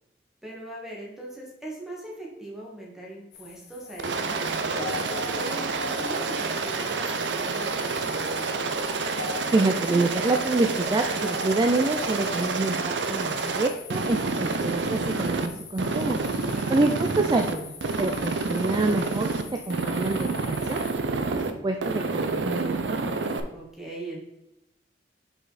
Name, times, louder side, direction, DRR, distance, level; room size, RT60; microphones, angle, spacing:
voice 1, 0.4-4.9 5.3-8.6 16.4-16.8 23.5-24.2, right 1 dB, ahead, -3 dB, 1.6 m, -40 dB
sound 1, 3.3-20.9, left 5 dB, 75° left, 1.1 m, -42 dB
Aircraft, 4.0-15.5 15.8-17.5 17.8-19.4 19.7-21.5 21.8-23.4, right 4 dB, 80° right, 0.6 m, -28 dB
voice 2, 9.5-16.2 16.7-19.3 19.7-20.8 21.3-23.2, right 2 dB, 25° right, 4 dB, 0.4 m, -27 dB
5.1 x 5.0 x 4.1 m, 0.89 s
head